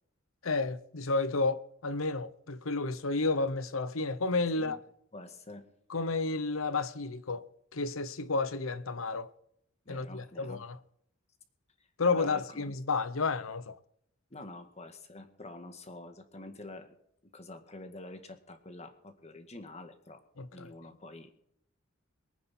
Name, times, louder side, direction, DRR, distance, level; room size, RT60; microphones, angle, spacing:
voice 1, 0.4-4.8 5.9-7.4 7.7-9.3 9.9-10.8 12.0-13.8 20.4-20.7, left 3 dB, 80° left, 0.9 m, -31 dB
voice 2, 5.1-5.7 9.9-10.6 12.2-12.7 14.3-17.0 17.3-20.2 20.5-21.3, left 2 dB, 30° left, 1.8 m, -47 dB
23.0 x 9.5 x 4.4 m
head